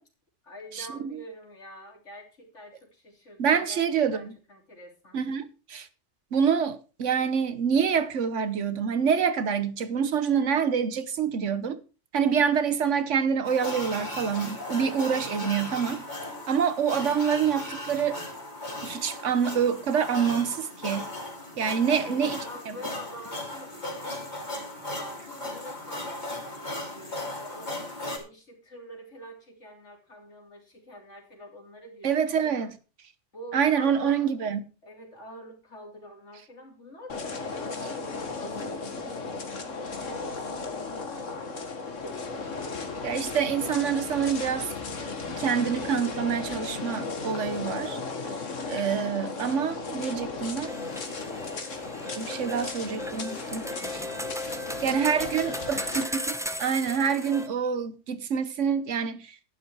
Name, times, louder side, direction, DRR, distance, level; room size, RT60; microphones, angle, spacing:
voice 1, 0.4-3.8 4.1-5.2 21.8-32.7 33.3-43.0 54.5-55.7, equal, 70° left, 3.8 m, -47 dB
voice 2, 3.4-4.3 5.1-5.9 6.3-11.8 12.1-16.0 16.5-18.2 18.8-21.1 21.6-22.4 32.0-32.7 33.5-34.6 43.0-44.7 45.3-48.0 48.7-50.7 52.1-54.0 54.8-59.4, right 7 dB, 75° right, 1.3 m, -26 dB
sound 1, 13.4-28.2, left 1 dB, 35° left, 3.0 m, -37 dB
sound 2, 37.1-56.0, left 4 dB, 85° left, 2.0 m, -35 dB
sound 3, 50.7-57.5, left 1 dB, 5° right, 0.7 m, -36 dB
11.5 x 10.0 x 4.7 m
omnidirectional pair, 1.3 m